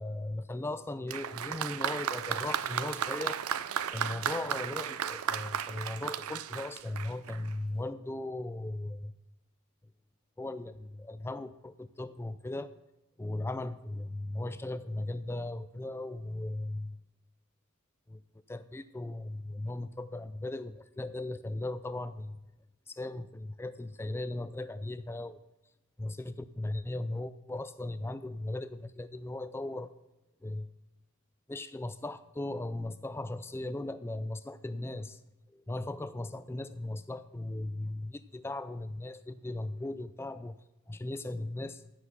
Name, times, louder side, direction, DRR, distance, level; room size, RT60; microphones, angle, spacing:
voice 1, 0.0-3.4 3.9-9.1 10.4-12.7 13.2-17.0 18.1-18.2 18.5-22.4 22.9-25.4 26.0-29.9 30.4-30.7 31.5-35.2 35.5-40.6 40.9-41.8, left 2 dB, 10° left, 13 dB, 0.3 m, -37 dB
Applause, 1.1-7.5, right 8 dB, 75° right, 0.5 m, -34 dB
15.0 x 6.0 x 6.0 m, 0.94 s
head